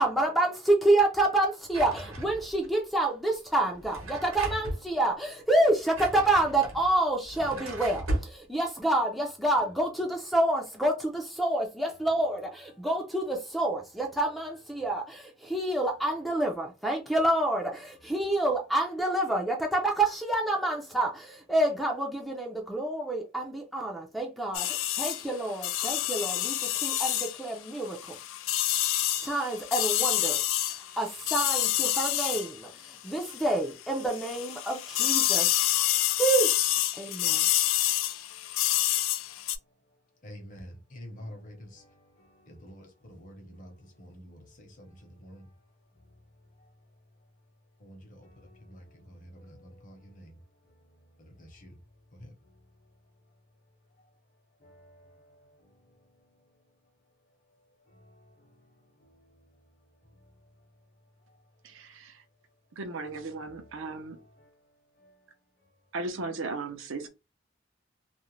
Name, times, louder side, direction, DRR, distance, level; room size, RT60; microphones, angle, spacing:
voice 1, 0.0-28.2 29.1-30.4 30.7-36.6 37.0-37.5, right 1 dB, ahead, 0.4 m, -28 dB
Drawer open or close, 1.7-2.7 3.7-4.8 5.7-8.3, right 1 dB, 90° right, 1.0 m, -36 dB
voice 2, 4.3-4.9 6.1-6.3 37.8-38.0 40.2-41.9 42.4-43.7 44.0-45.4 47.8-48.3 48.6-50.3 51.3-51.7 52.2-52.3 54.6-55.1 63.0-63.2 63.4-63.6, equal, 40° left, 0.8 m, -48 dB
sound 1, 24.5-33.6 33.9-39.6, left 13 dB, 70° left, 0.3 m, -28 dB
voice 3, 61.6-62.2 62.8-64.2 65.9-67.1, right 3 dB, 70° right, 0.6 m, -36 dB
2.4 x 2.1 x 3.0 m
head